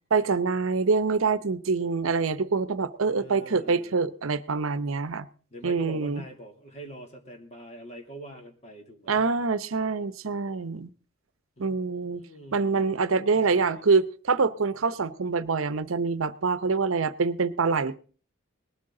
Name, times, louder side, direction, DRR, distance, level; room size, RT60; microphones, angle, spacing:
voice 1, 0.1-5.3 5.6-6.2 9.1-10.9 11.6-12.2 12.5-18.0, right 4 dB, 80° right, 15 dB, 0.7 m, -25 dB
voice 2, 3.1-4.0 5.5-9.3 11.6-13.8, right 1 dB, 35° left, 3 dB, 2.6 m, -45 dB
19.5 x 13.0 x 3.8 m, 0.40 s
head